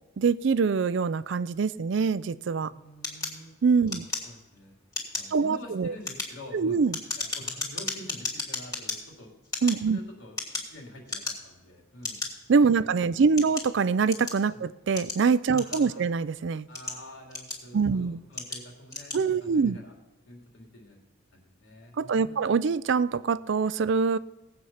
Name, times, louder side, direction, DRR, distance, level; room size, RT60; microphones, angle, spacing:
voice 1, 0.2-2.7 3.6-4.1 5.3-5.9 6.5-6.9 9.6-10.0 12.5-16.7 17.7-18.2 19.1-19.8 22.0-24.2, right 5 dB, 60° right, 0.4 m, -24 dB
voice 2, 2.7-3.5 3.9-4.7 5.1-6.9 7.2-9.4 9.9-10.3 10.6-12.2 13.0-13.5 14.5-14.6 15.5-16.1 16.7-19.9 20.3-21.0 21.3-22.5, left 1 dB, 75° left, 3.2 m, -47 dB
sound 1, 3.0-4.6 4.9-5.4 5.9-9.0 9.4-10.8 11.1-11.6 12.0-12.3 13.0-14.4 15.0-16.1 16.6-17.8 18.3-18.6 18.9-19.2, left 3 dB, 15° left, 2.5 m, -34 dB
18.5 x 8.0 x 5.7 m
head